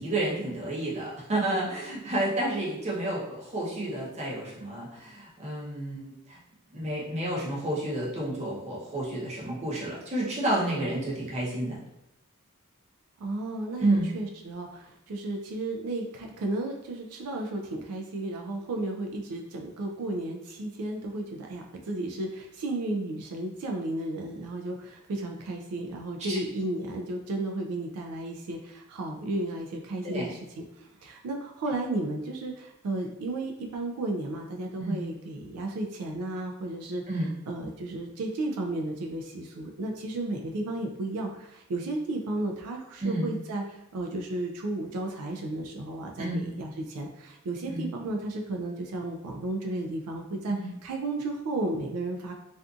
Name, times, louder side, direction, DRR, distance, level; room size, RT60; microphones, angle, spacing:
voice 1, 0.0-6.4 6.7-11.8 13.8-14.1 26.3-26.4 30.0-30.3 34.8-35.0 37.1-37.3 43.0-43.3 46.2-46.4 47.7-47.9 50.5-50.7, right 1 dB, 30° right, -5 dB, 0.7 m, -30 dB
voice 2, 13.2-37.0 37.5-50.6 50.8-52.3, right 2 dB, 90° right, 2 dB, 0.4 m, -33 dB
2.5 x 2.4 x 2.4 m, 0.88 s
head